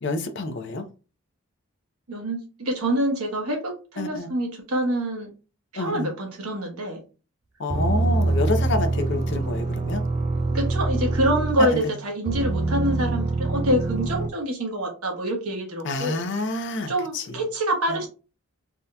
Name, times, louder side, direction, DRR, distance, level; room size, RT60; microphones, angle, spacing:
voice 1, 0.0-0.9 4.0-4.3 5.7-6.1 7.6-10.0 11.6-11.9 15.8-17.4 17.9-18.0, left 2 dB, 55° left, 0.5 m, -28 dB
voice 2, 2.1-5.3 5.7-7.0 10.5-16.2 16.9-18.1, right 1 dB, 90° right, 1.1 m, -26 dB
sound 1, 7.7-11.8 12.2-14.3, right 2 dB, 30° right, 0.4 m, -25 dB
3.5 x 2.7 x 2.2 m
head